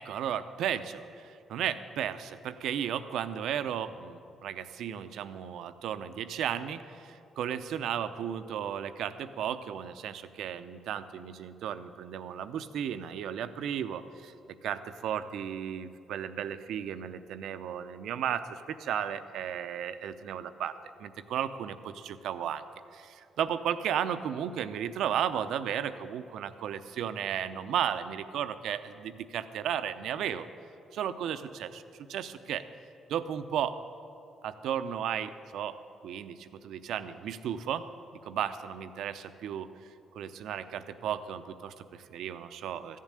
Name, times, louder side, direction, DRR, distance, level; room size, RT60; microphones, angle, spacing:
voice 1, 0.0-14.3 14.6-22.6 22.9-30.5 30.9-31.8 32.1-32.6 33.1-33.8 34.4-35.8 36.0-37.8 38.2-39.7 40.1-43.0, right 9 dB, 80° right, 11 dB, 0.6 m, -34 dB
14.0 x 7.5 x 9.8 m, 2.6 s
cardioid pair, 90°, 0 cm